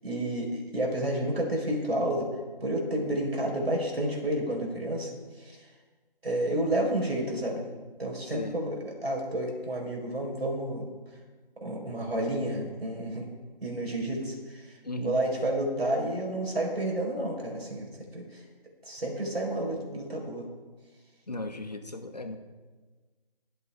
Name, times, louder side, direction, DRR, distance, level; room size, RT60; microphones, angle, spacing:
voice 1, 0.0-2.3 2.6-5.7 6.2-7.6 8.0-10.9 11.6-13.3 13.6-18.4 18.8-20.5, right 1 dB, 90° right, 0 dB, 4.6 m, -30 dB
voice 2, 14.8-15.2 21.3-22.4, left 1 dB, 45° left, 7 dB, 1.0 m, -36 dB
21.0 x 8.2 x 3.6 m, 1.3 s
figure-of-eight pair, 180°, 29 cm